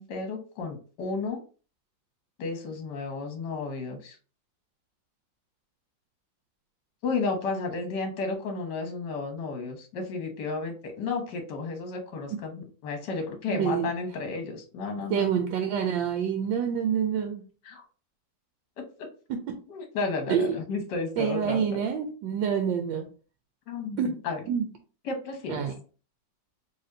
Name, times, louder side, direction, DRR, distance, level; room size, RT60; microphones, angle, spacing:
voice 1, 0.0-1.4 2.4-4.2 7.0-15.4 17.6-17.8 19.7-21.8 23.7-24.4 25.0-25.6, left 4 dB, 70° left, 4 dB, 1.5 m, -33 dB
voice 2, 13.5-13.9 15.1-17.4 19.3-19.7 20.3-20.6 21.2-23.1 24.0-24.2 24.5-24.7 25.5-25.7, right 7 dB, 80° right, 4 dB, 1.3 m, -27 dB
4.1 x 3.2 x 2.7 m, 0.38 s
omnidirectional pair, 2.0 m